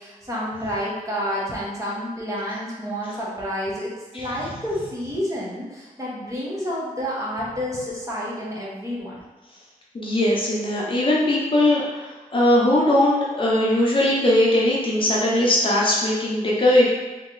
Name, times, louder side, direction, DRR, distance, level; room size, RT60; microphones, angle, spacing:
voice 1, 0.0-9.2, equal, 20° right, -6 dB, 0.9 m, -29 dB
voice 2, 9.9-16.9, left 1 dB, 35° left, -5 dB, 0.7 m, -20 dB
3.1 x 2.8 x 3.8 m, 1.2 s
wide cardioid pair, 170°, 15 cm